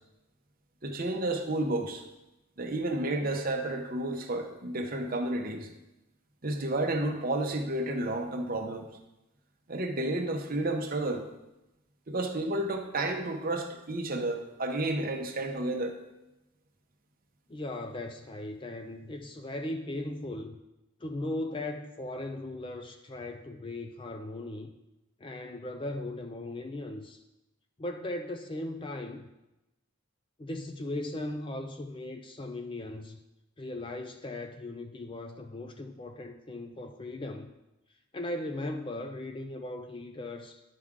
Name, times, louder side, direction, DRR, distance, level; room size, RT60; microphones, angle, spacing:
voice 1, 0.8-2.0 2.6-5.7 6.4-8.9 9.7-11.2 12.1-15.9, right 2 dB, 40° right, 4 dB, 0.8 m, -31 dB
voice 2, 17.5-20.6 21.0-24.7 25.2-27.2 27.8-29.2 30.4-33.2 33.6-37.5 38.1-40.6, left 1 dB, 25° left, 6 dB, 0.4 m, -38 dB
11.0 x 4.8 x 3.6 m, 0.96 s
head